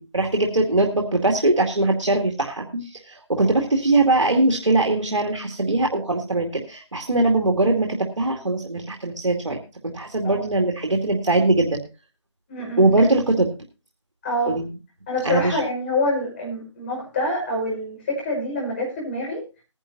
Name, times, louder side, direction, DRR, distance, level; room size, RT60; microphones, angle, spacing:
voice 1, 0.1-11.8 12.8-13.5 14.5-14.7 15.2-15.6, right 2 dB, 75° right, 1 dB, 2.3 m, -21 dB
voice 2, 12.5-12.9 14.2-14.6 15.1-19.4, left 1 dB, 25° left, -1 dB, 5.7 m, -26 dB
20.0 x 10.5 x 2.7 m, 0.31 s
figure-of-eight pair, 160°, 16 cm